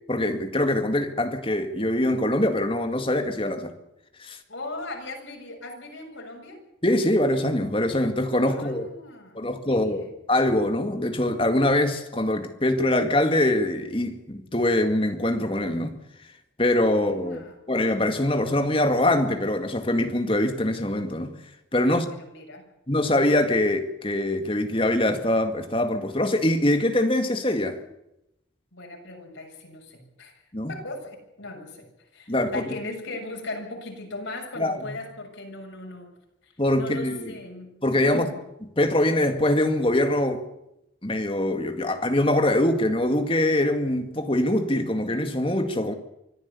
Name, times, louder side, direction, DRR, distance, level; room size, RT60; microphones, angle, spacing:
voice 1, 0.1-3.7 4.2-4.4 6.8-8.9 9.4-15.9 16.6-17.4 17.7-21.3 21.7-22.1 22.9-27.8 30.5-30.7 32.3-32.7 34.6-34.8 36.6-37.3 37.8-38.3 38.8-40.4 41.0-45.9, left 1 dB, 25° left, 2.0 m, -23 dB
voice 2, 4.5-6.6 8.5-10.1 17.0-17.6 21.8-22.7 28.7-30.3 30.7-31.9 32.1-36.1 36.4-37.7 38.0-38.4, left 2 dB, 90° left, 7.3 m, -38 dB
24.5 x 14.5 x 8.5 m
head